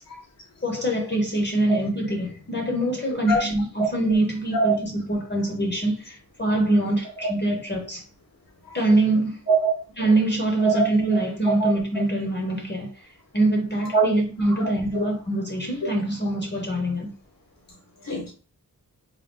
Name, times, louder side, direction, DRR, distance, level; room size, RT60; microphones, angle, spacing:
voice 1, 0.6-8.0 8.7-9.4 10.0-12.9 13.3-17.1, right 1 dB, 30° left, 0.8 m, -24 dB
voice 2, 10.6-11.7 13.9-14.1 14.6-15.0 18.1-18.3, right 3 dB, 75° left, 1.0 m, -23 dB
3.8 x 2.1 x 3.6 m
wide cardioid pair, 100°, 35 cm